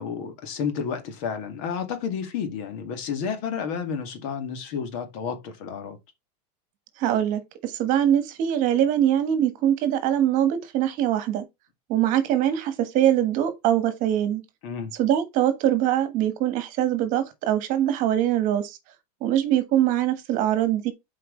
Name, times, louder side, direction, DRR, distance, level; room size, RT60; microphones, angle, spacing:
voice 1, 0.0-6.0 14.6-14.9, left 6 dB, 55° left, 2.0 m, -31 dB
voice 2, 7.0-11.4 11.9-14.4 15.0-18.8 19.2-20.9, right 11 dB, 40° right, 1.5 m, -23 dB
7.7 x 4.7 x 3.2 m
supercardioid pair, 155°, 20 cm